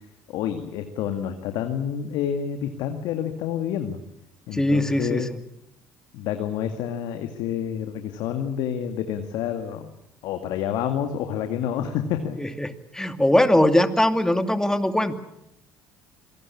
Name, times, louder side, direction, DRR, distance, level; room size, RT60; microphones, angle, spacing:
voice 1, 0.3-4.0 4.5-5.3 6.1-9.9 10.2-12.4, left 9 dB, 70° left, 6 dB, 2.1 m, -28 dB
voice 2, 4.5-5.3 12.4-15.1, left 1 dB, 5° left, 9 dB, 2.5 m, -21 dB
26.5 x 18.5 x 8.6 m, 0.82 s
hypercardioid pair, 70°, 8 cm